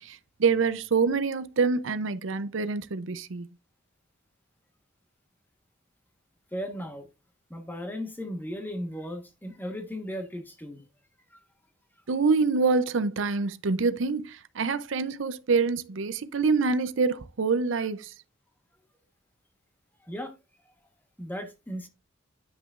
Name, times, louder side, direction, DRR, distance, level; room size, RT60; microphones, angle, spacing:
voice 1, 0.0-3.5 12.1-18.1, right 4 dB, 70° right, 0.5 m, -26 dB
voice 2, 6.5-7.1 7.5-10.8 11.3-11.4 20.0-20.3 21.2-21.9, equal, 10° left, 1.2 m, -36 dB
10.0 x 6.0 x 2.4 m
head